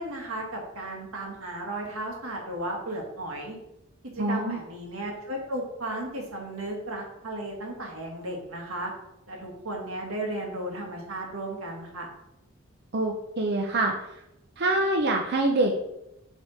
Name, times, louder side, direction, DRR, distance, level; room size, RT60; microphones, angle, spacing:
voice 1, 0.0-3.6 4.1-8.9 9.3-12.1, right 1 dB, 90° right, 0 dB, 1.6 m, -34 dB
voice 2, 4.2-4.6 12.9-13.9 14.6-15.7, right 2 dB, 50° right, 2 dB, 0.6 m, -25 dB
7.5 x 3.6 x 4.0 m, 0.88 s
head